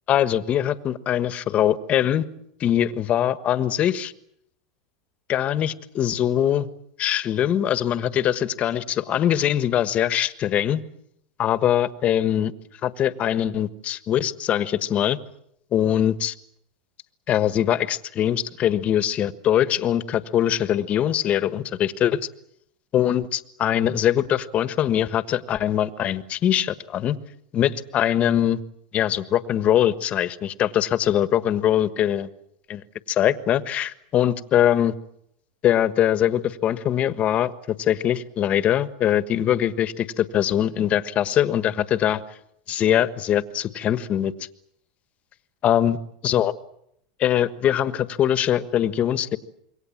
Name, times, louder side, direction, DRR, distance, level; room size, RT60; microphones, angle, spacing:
voice 1, 0.1-2.2 2.6-4.1 5.3-6.7 7.0-10.8 11.4-12.5 12.8-15.2 15.7-16.3 17.3-22.2 22.9-27.2 27.5-28.6 28.9-32.3 32.7-32.8 33.1-34.9 35.6-42.2 42.7-44.3 45.6-46.0 46.2-46.5 47.2-49.4, left 11 dB, 35° left, 13 dB, 1.4 m, -22 dB
27.0 x 23.5 x 7.4 m, 0.73 s
supercardioid pair, 125°, 4 cm